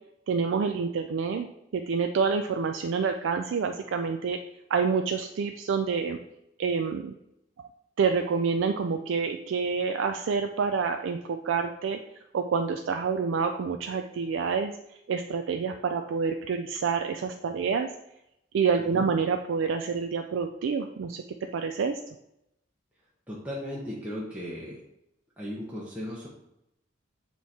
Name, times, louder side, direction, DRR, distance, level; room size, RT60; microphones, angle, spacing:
voice 1, 0.3-1.5 1.7-4.4 4.7-6.2 6.6-7.2 8.0-12.0 12.3-14.8 15.1-17.9 18.5-21.2 21.5-22.0, right 5 dB, 70° right, 6 dB, 0.3 m, -27 dB
voice 2, 23.3-24.8 25.4-26.3, equal, 10° right, -6 dB, 0.9 m, -36 dB
7.5 x 3.0 x 4.1 m, 0.83 s
head